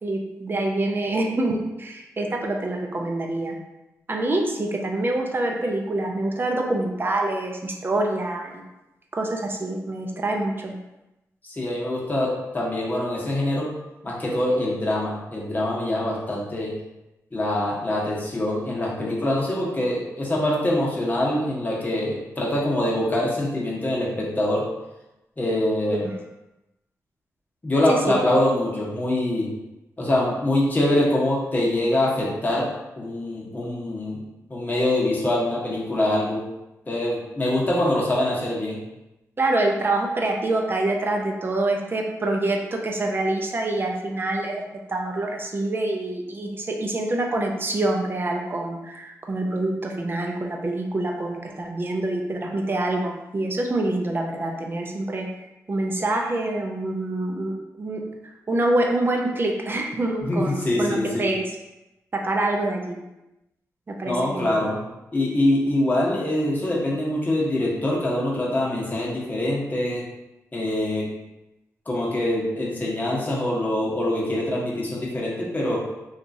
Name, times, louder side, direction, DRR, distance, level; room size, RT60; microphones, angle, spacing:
voice 1, 0.0-3.5 4.1-8.6 9.1-10.8 26.0-26.1 27.9-28.0 39.4-44.6 44.9-55.3 55.7-58.0 58.5-61.5 62.1-63.0 63.9-64.5, right 2 dB, 35° right, 1 dB, 0.5 m, -26 dB
voice 2, 11.4-13.7 14.0-16.7 17.3-24.6 25.4-26.0 27.6-29.5 30.0-32.7 33.0-34.2 34.5-36.4 36.9-38.8 60.2-61.3 64.0-64.8 65.1-70.0 70.5-71.0 71.9-75.8, left 1 dB, 25° left, -5 dB, 1.0 m, -24 dB
2.9 x 2.4 x 2.6 m, 0.97 s
cardioid pair, 55°, 6 cm